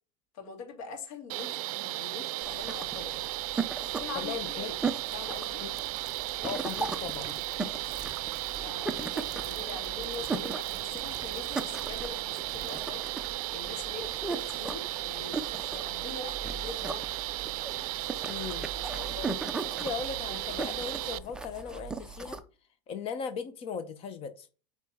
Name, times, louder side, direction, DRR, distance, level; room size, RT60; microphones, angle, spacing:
voice 1, 0.3-3.2 3.8-4.7 5.1-5.6 8.6-13.0 13.5-17.1 18.8-19.4, left 5 dB, 70° left, 3.0 m, -43 dB
sound 1, 1.3-21.2, right 17 dB, 85° right, 0.4 m, -35 dB
sound 2, 2.4-22.4, right 4 dB, 5° right, 0.4 m, -38 dB
voice 2, 4.1-4.9 5.6-5.7 6.4-7.4 18.3-18.7 19.8-22.4 22.9-24.5, left 6 dB, 30° left, 0.7 m, -38 dB
sound 3, 5.0-14.5 14.9-15.2, right 7 dB, 20° right, 0.9 m, -51 dB
8.6 x 4.7 x 3.6 m
supercardioid pair, 160°, 18 cm